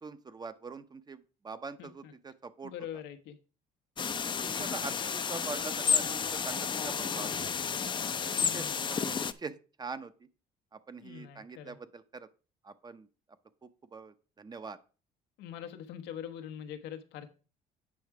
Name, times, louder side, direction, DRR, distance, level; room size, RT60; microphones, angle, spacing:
voice 1, 0.0-2.7 4.4-7.5 8.4-10.1 10.7-12.3 12.6-13.1 13.9-14.8, right 4 dB, 25° right, 0.7 m, -43 dB
voice 2, 1.8-2.1 2.6-3.4 8.3-8.8 11.0-11.8 15.4-17.3, left 9 dB, 90° left, 1.0 m, -43 dB
sound 1, 4.0-9.3, left 6 dB, 30° left, 0.5 m, -31 dB
8.4 x 5.7 x 4.7 m
cardioid pair, 110°, 17 cm